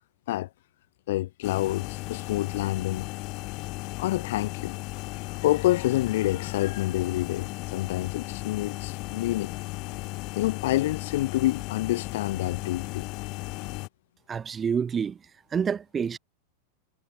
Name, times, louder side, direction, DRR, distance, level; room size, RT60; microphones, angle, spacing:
voice 1, 1.1-3.1 4.0-4.8 5.4-9.6 10.3-13.1, left 16 dB, 70° left, 3.0 m, -27 dB
sound 1, 1.4-13.9, left 24 dB, 45° left, 2.4 m, -36 dB
voice 2, 14.3-15.2 15.5-16.2, right 7 dB, 20° right, 0.7 m, -27 dB
supercardioid pair, 135°, 0 cm